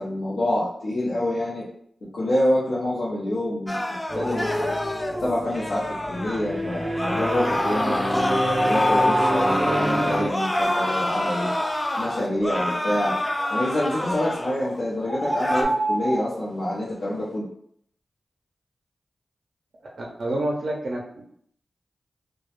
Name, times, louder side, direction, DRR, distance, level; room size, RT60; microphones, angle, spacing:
voice 1, 0.0-1.7 2.1-3.8 4.1-4.7 5.2-11.5 12.0-13.1 13.5-17.4, left 1 dB, 90° left, -9 dB, 0.6 m, -26 dB
sound 1, 3.7-6.4 6.9-14.8 15.2-15.6, left 1 dB, 20° left, 0.3 m, -26 dB
sound 2, 4.1-10.3, right 1 dB, 25° right, 0.6 m, -29 dB
sound 3, 8.7-9.6 14.2-14.4 15.0-16.3, equal, 50° left, 0.8 m, -25 dB
voice 2, 20.0-21.2, right 1 dB, 75° right, -3 dB, 0.4 m, -28 dB
2.2 x 2.0 x 2.8 m, 0.67 s
cardioid pair, 50°, 0 cm